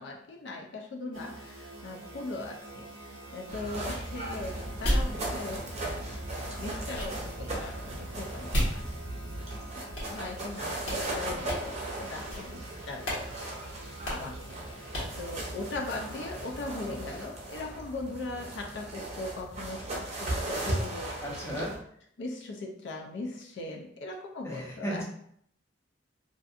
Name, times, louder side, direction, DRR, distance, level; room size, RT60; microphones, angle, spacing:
voice 1, 0.0-6.2 6.6-8.9 9.6-21.6 22.2-25.0, left 2 dB, 70° left, 1 dB, 0.4 m, -40 dB
sound 1, 1.1-17.3, right 2 dB, 80° right, 0.5 m, -47 dB
sound 2, 3.5-21.8, right 1 dB, 35° right, 0.6 m, -37 dB
sound 3, 4.1-9.4 10.0-10.6 10.8-11.0 11.5-11.9 12.3-12.6 13.0-13.3 13.5-13.6 14.0-14.4 14.9-15.2, equal, 90° left, 1.2 m, -34 dB
voice 2, 21.2-21.7 24.4-25.0, equal, 15° left, -3 dB, 0.6 m, -35 dB
2.5 x 2.4 x 2.4 m, 0.67 s
head